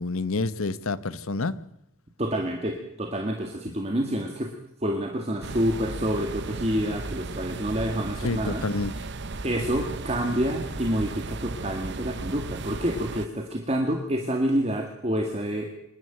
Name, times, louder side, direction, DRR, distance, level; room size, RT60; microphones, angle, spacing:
voice 1, 0.0-1.5 8.2-8.9, left 3 dB, 70° left, 15 dB, 1.0 m, -28 dB
voice 2, 2.2-4.5 4.8-8.6 9.4-15.6, equal, 30° right, 3 dB, 2.0 m, -28 dB
sound 1, 5.4-13.3, right 3 dB, 50° right, 0.9 m, -35 dB
26.0 x 11.0 x 9.1 m, 0.82 s
head